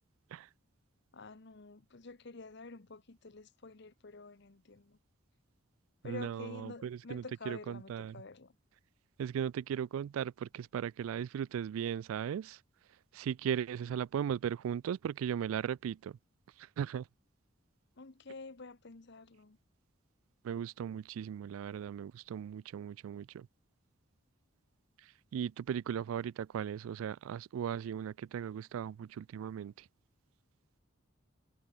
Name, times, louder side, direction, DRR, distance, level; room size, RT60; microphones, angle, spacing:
voice 1, 1.1-5.0 6.0-8.5 18.0-19.6, left 3 dB, 55° left, 1.0 m, -49 dB
voice 2, 6.0-8.2 9.2-12.6 12.9-16.2 16.6-17.1 20.4-23.5 25.0-29.9, right 8 dB, 85° right, 0.3 m, -37 dB
head